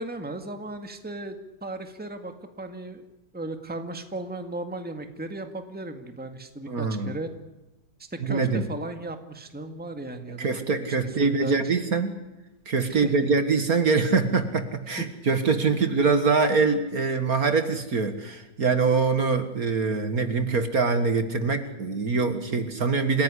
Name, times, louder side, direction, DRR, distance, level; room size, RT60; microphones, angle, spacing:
voice 1, 0.0-3.0 3.3-7.3 8.1-10.9 11.4-11.6 12.9-13.3 15.0-15.1, right 2 dB, 5° right, 6 dB, 1.8 m, -36 dB
voice 2, 6.7-7.1 8.2-8.6 10.4-12.1 12.7-23.2, right 4 dB, 50° right, 8 dB, 2.1 m, -24 dB
28.0 x 16.5 x 9.9 m, 1.0 s
omnidirectional pair, 2.0 m